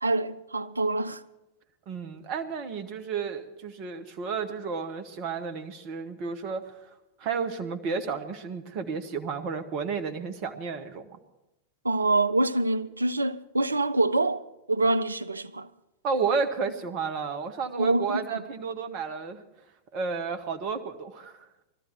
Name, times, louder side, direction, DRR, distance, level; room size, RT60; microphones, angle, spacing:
voice 1, 0.0-1.2 11.8-14.4 14.7-15.7 17.8-18.4, right 2 dB, 80° right, 0.5 m, -26 dB
voice 2, 1.9-6.7 7.2-11.1 16.0-19.4 19.9-21.6, right 5 dB, 40° right, 1.3 m, -32 dB
19.5 x 13.5 x 4.6 m
figure-of-eight pair, 90°, 0 cm